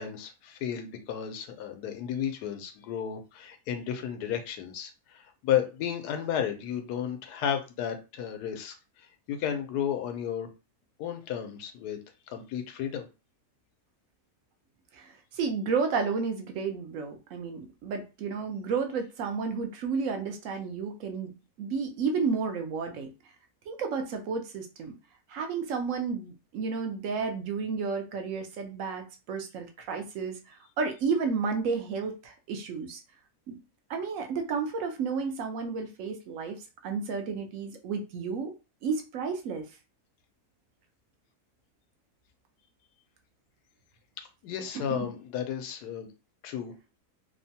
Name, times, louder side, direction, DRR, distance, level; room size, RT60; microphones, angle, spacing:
voice 1, 0.0-8.8 9.3-10.5 11.0-12.0 12.3-13.1 44.2-46.1 46.4-46.7, left 9 dB, 85° left, 6 dB, 1.2 m, -33 dB
voice 2, 14.9-21.3 21.6-23.1 23.7-24.9 25.3-33.0 33.5-33.6 33.9-38.5 38.8-39.7 44.9-45.1, right 5 dB, 70° right, 5 dB, 0.8 m, -32 dB
3.0 x 2.1 x 2.7 m, 0.30 s
omnidirectional pair, 1.7 m